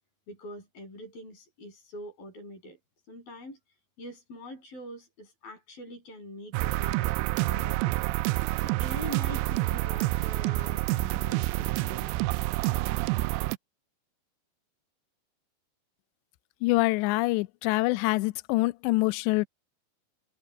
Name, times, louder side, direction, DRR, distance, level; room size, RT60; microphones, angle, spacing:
voice 1, 0.3-2.8 3.1-3.6 4.0-7.1 7.5-8.0 8.6-12.1, left 1 dB, 50° left, 9.6 m, -43 dB
sound 1, 6.5-13.6, right 20 dB, 90° right, 2.5 m, -28 dB
voice 2, 16.6-19.5, left 22 dB, 80° left, 2.6 m, -25 dB
omnidirectional pair, 5.6 m